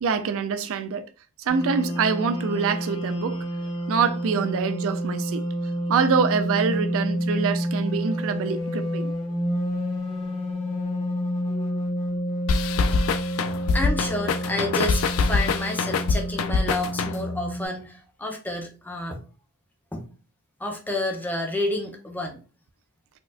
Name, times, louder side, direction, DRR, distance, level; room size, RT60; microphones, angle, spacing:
voice 1, 0.0-1.1 1.4-5.5 5.9-9.1, right 5 dB, 65° right, 0.4 m, -25 dB
sound 1, 1.5-17.7, equal, 25° left, 1.0 m, -29 dB
sound 2, 12.5-17.4, left 4 dB, 65° left, 0.3 m, -24 dB
voice 2, 13.7-19.2 19.9-20.1 20.6-22.4, left 1 dB, 10° left, 0.6 m, -30 dB
4.3 x 2.3 x 2.4 m
head